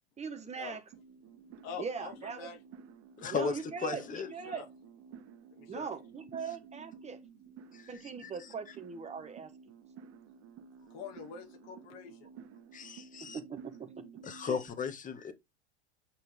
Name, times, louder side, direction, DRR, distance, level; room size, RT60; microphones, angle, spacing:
voice 1, 0.2-0.8 1.8-2.5 3.3-4.0 4.3-4.7 5.7-7.2 7.9-9.5 13.3-14.0 14.4-14.6, right 6 dB, 20° right, 1.3 m, -40 dB
sound 1, 0.9-14.7, right 6 dB, 45° right, 1.6 m, -53 dB
voice 2, 1.6-2.6 3.2-3.6 4.0-4.7 5.5-5.9 10.9-12.3, left 7 dB, 50° left, 2.3 m, -46 dB
voice 3, 3.2-4.3 7.7-8.5 12.7-13.4 14.2-15.3, left 6 dB, 25° left, 1.8 m, -36 dB
8.7 x 5.7 x 3.5 m
supercardioid pair, 120°, 33 cm